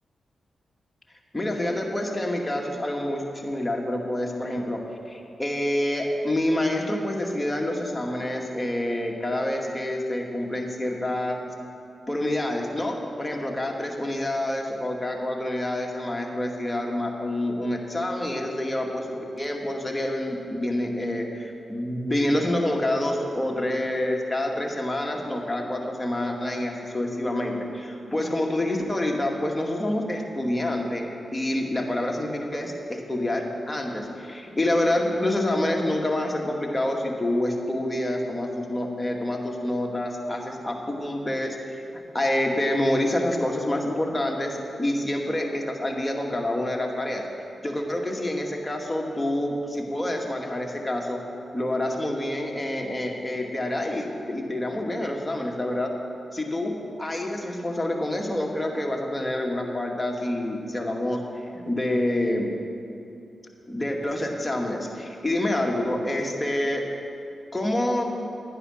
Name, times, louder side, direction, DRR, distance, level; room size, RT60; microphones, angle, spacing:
voice 1, 1.3-11.4 12.1-41.8 42.1-47.2 47.6-51.2 51.5-55.9 56.3-62.5 63.7-66.8 67.5-68.1, left 1 dB, 15° left, 0 dB, 2.3 m, -27 dB
11.5 x 9.7 x 6.6 m, 2.6 s
supercardioid pair, 40°, 0 cm